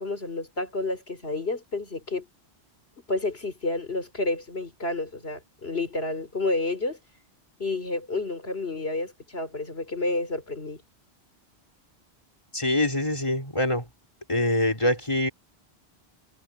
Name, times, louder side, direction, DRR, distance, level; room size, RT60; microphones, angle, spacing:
voice 1, 0.0-2.3 3.1-7.0 7.6-10.8, left 2 dB, 75° left, 4.1 m, -30 dB
voice 2, 12.5-13.8 14.3-15.3, left 1 dB, 30° left, 3.6 m, -24 dB
omnidirectional pair, 1.1 m